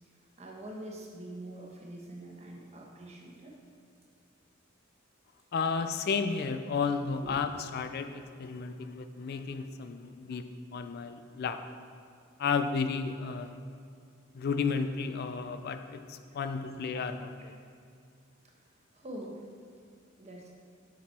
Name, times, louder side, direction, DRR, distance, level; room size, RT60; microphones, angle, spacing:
voice 1, 0.4-3.6 7.2-7.3 16.2-16.4 16.9-17.0 18.4-19.5 20.2-20.5, right 1 dB, 30° right, -1 dB, 1.1 m, -45 dB
voice 2, 5.5-10.4 10.7-11.6 12.4-13.5 14.3-17.5, left 5 dB, 50° left, 9 dB, 0.3 m, -33 dB
7.4 x 6.1 x 4.2 m, 2.4 s
head